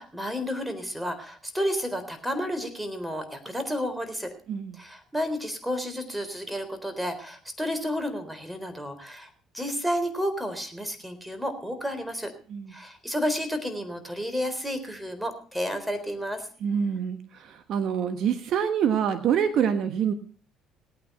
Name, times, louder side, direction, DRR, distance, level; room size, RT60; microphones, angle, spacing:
voice 1, 0.0-4.3 4.7-9.3 9.5-12.3 12.7-16.5, equal, 5° right, 9 dB, 3.9 m, -31 dB
voice 2, 16.6-20.1, right 8 dB, 60° right, 9 dB, 1.2 m, -26 dB
18.5 x 9.1 x 5.6 m, 0.42 s
hypercardioid pair, 55°, 0 cm